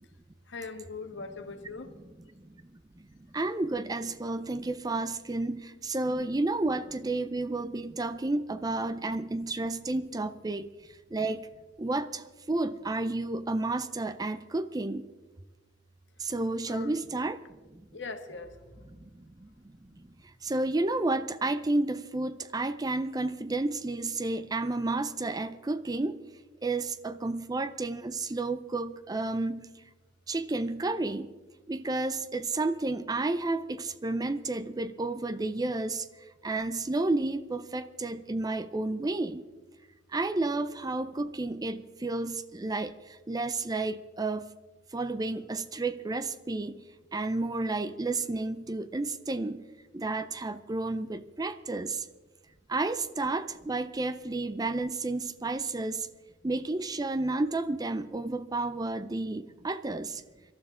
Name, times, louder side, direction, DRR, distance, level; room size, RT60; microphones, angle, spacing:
voice 1, 0.5-2.0 16.6-17.0 17.9-18.8, left 4 dB, 70° left, 7 dB, 1.4 m, -41 dB
voice 2, 2.7-3.1 3.3-11.5 11.8-15.0 16.2-17.4 17.7-17.8 18.9-26.2 26.6-29.8 30.3-31.3 31.7-36.1 36.4-39.4 40.1-44.5 44.9-46.8 47.1-49.7 49.9-52.1 52.7-56.1 56.4-60.2, right 2 dB, 20° right, 13 dB, 0.5 m, -31 dB
25.0 x 12.5 x 3.7 m, 1.2 s
head